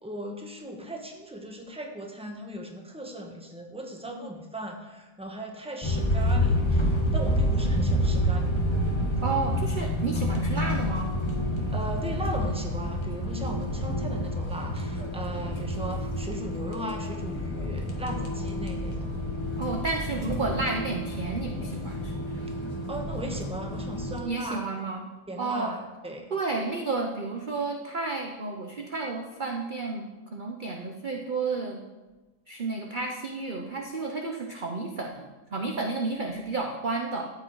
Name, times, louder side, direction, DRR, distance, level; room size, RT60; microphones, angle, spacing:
voice 1, 0.0-8.6 11.7-19.0 22.9-24.7 25.3-26.3, right 1 dB, 5° right, 2 dB, 1.2 m, -38 dB
sound 1, 5.8-24.2, equal, 15° left, 1.6 m, -28 dB
voice 2, 9.2-11.2 19.6-22.5 24.2-25.0 25.4-25.7 26.3-31.8 32.5-37.3, right 3 dB, 40° right, 2 dB, 0.8 m, -31 dB
13.0 x 8.9 x 4.7 m, 1.2 s
omnidirectional pair, 1.8 m